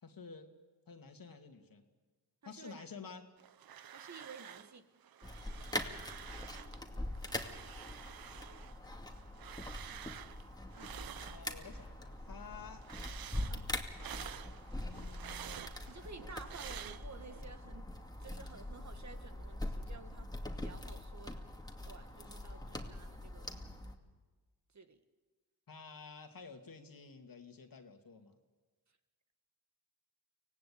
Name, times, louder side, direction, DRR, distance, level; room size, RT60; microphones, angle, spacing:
voice 1, 0.0-0.5 0.9-1.8 2.4-3.3 11.2-12.8 14.8-15.6 22.1-23.2 25.7-28.4, left 5 dB, 55° left, 6 dB, 2.4 m, -52 dB
voice 2, 2.4-2.9 3.9-4.9 10.7-11.0 13.5-13.7 15.9-17.9 18.2-20.3 20.6-21.4 21.8-23.6 24.7-25.0, right 4 dB, 40° right, 8 dB, 1.8 m, -53 dB
sound 1, 3.4-4.8 5.0-6.8 7.2-11.9 12.2-17.4, right 10 dB, 60° right, 0.8 m, -50 dB
sound 2, 5.2-23.9, left 1 dB, 10° left, 2.5 m, -43 dB
24.5 x 17.0 x 8.6 m, 1.4 s
cardioid pair, 50°, 41 cm